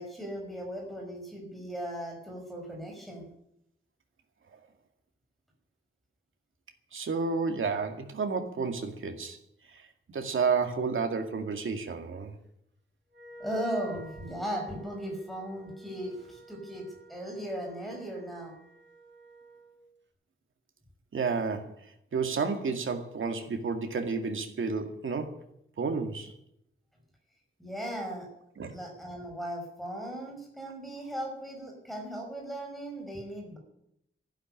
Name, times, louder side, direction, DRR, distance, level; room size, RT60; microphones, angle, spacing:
voice 1, 0.0-3.3 13.4-18.6 27.6-28.3 28.7-33.6, equal, ahead, -1 dB, 5.6 m, -37 dB
voice 2, 6.9-9.4 9.7-9.9 10.1-12.3 21.1-21.8 22.1-25.3 25.8-26.3 28.6-28.7, right 5 dB, 85° right, 5 dB, 2.2 m, -31 dB
Wind instrument woodwind instrument, 13.1-19.8, right 3 dB, 70° right, 5.2 m, -51 dB
12.5 x 11.5 x 9.6 m, 0.75 s
wide cardioid pair, 180°, 20 cm